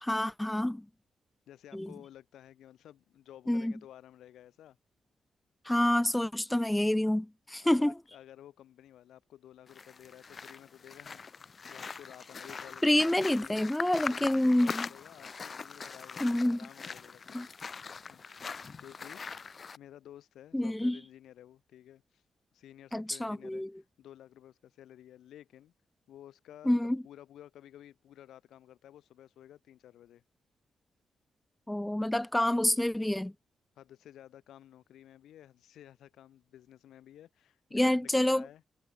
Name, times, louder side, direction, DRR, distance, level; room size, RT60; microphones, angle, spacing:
voice 1, 0.0-0.8 1.7-1.9 3.5-3.7 5.6-7.9 12.8-14.9 16.2-16.6 17.3-17.5 20.5-21.0 22.9-23.7 26.7-27.0 31.7-33.3 37.7-38.5, left 1 dB, 10° left, 0.6 m, -27 dB
voice 2, 1.5-4.8 7.5-11.3 11.7-13.7 14.1-17.5 18.1-18.2 18.8-22.2 22.5-25.7 26.1-26.7 27.0-30.2 33.8-38.6, left 11 dB, 90° left, 2.9 m, -53 dB
sound 1, 9.7-19.8, left 5 dB, 45° left, 1.3 m, -42 dB
cardioid pair, 80°, 0 cm